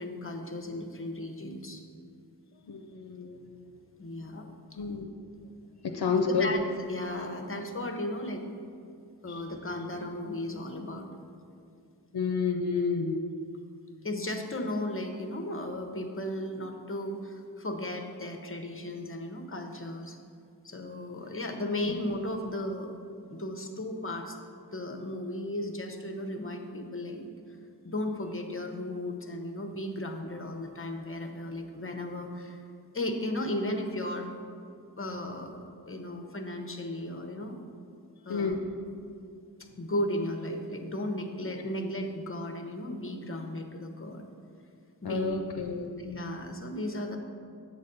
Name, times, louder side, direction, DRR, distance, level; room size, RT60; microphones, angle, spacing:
voice 1, 0.0-1.8 4.0-4.5 6.3-6.6 6.9-8.4 9.2-11.1 14.0-20.2 20.6-22.9 23.3-24.4 24.7-27.3 27.8-32.6 32.9-34.3 35.0-35.6 35.9-37.5 38.3-38.6 39.8-44.3 45.0-45.4 46.0-47.2, left 1 dB, 35° left, 4 dB, 0.9 m, -35 dB
voice 2, 2.7-3.7 4.7-5.1 5.8-6.5 9.3-9.4 12.1-13.2 38.3-38.6 45.0-46.1, left 5 dB, 70° left, 3 dB, 0.6 m, -30 dB
8.4 x 4.1 x 6.7 m, 2.4 s
wide cardioid pair, 45°, 39 cm